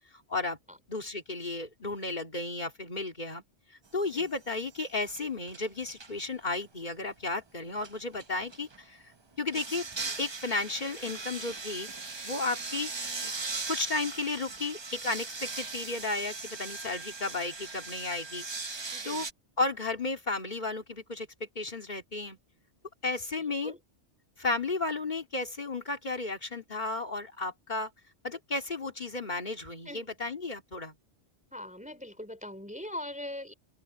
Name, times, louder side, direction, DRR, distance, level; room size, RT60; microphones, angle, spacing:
voice 1, 0.9-3.4 3.9-9.0 9.4-9.8 10.2-11.9 12.2-12.9 13.2-13.3 13.7-18.4 19.0-19.3 19.6-22.4 23.0-23.7 24.4-27.9 28.2-30.9, left 3 dB, 40° left, 3.0 m, -33 dB
sound 1, 4.1-4.5 4.8-6.2 7.8-8.8 9.5-19.3, right 4 dB, 25° right, 0.8 m, -39 dB
voice 2, 18.9-19.2 23.6-23.8 29.8-30.1 31.5-33.5, left 1 dB, 5° right, 3.2 m, -41 dB
open air
omnidirectional pair, 1.2 m